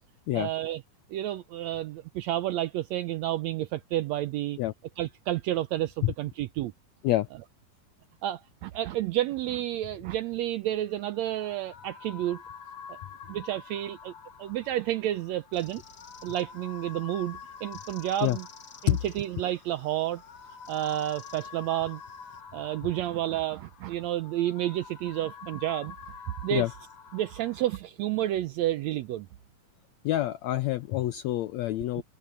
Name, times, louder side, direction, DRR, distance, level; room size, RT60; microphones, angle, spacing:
voice 1, 0.3-0.8 1.1-4.6 5.0-6.7 8.2-12.4 12.9-13.0 13.3-14.1 14.4-15.8 16.2-18.5 18.8-20.2 20.7-22.0 22.5-25.9 26.4-26.7 27.1-29.3, right 13 dB, 80° right, 1.5 m, -30 dB
sound 1, 10.8-27.8, left 6 dB, 55° left, 2.6 m, -47 dB
sound 2, 15.5-22.4, left 5 dB, 40° left, 2.0 m, -55 dB
voice 2, 30.0-32.0, left 15 dB, 80° left, 1.6 m, -27 dB
omnidirectional pair, 3.8 m